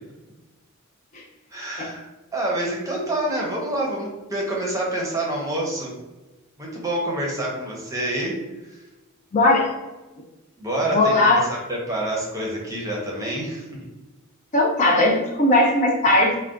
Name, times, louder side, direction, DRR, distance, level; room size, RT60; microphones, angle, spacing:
voice 1, 1.5-2.0 2.3-5.9 6.6-8.4 8.7-8.8 10.6-13.7, right 1 dB, 15° right, -3 dB, 0.7 m, -27 dB
voice 2, 9.3-9.7 10.9-11.5 14.5-16.4, left 2 dB, 35° left, 0 dB, 0.4 m, -18 dB
2.4 x 2.2 x 3.6 m, 1.1 s
head